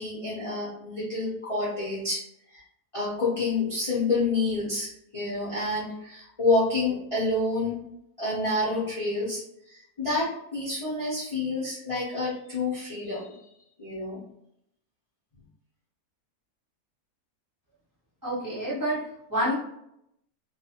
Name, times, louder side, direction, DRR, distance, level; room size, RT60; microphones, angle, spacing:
voice 1, 0.0-2.2 2.5-2.6 2.9-7.8 8.2-9.4 9.7-13.4 13.8-14.2, left 2 dB, 30° left, -8 dB, 0.6 m, -28 dB
voice 2, 18.2-19.5, equal, 15° right, -8 dB, 1.0 m, -28 dB
2.5 x 2.4 x 2.8 m, 0.77 s
omnidirectional pair, 1.7 m